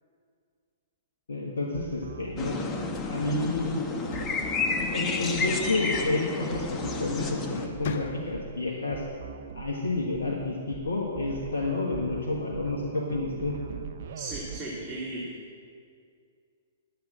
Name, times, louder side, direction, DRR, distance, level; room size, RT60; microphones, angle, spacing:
voice 1, 1.3-4.1 4.7-9.0 9.5-13.6, left 2 dB, 75° left, -3 dB, 1.6 m, -30 dB
sound 1, 1.7-14.6, right 9 dB, 60° right, 0.6 m, -43 dB
sound 2, 2.4-7.7, left 4 dB, 20° left, 1.1 m, -31 dB
sound 3, 4.0-5.4 6.8-7.1 7.5-8.7, left 6 dB, 55° left, 0.8 m, -41 dB
voice 2, 14.1-15.4, right 2 dB, 10° right, -9 dB, 2.7 m, -36 dB
11.0 x 8.1 x 7.4 m, 2.2 s
figure-of-eight pair, 115°, 0 cm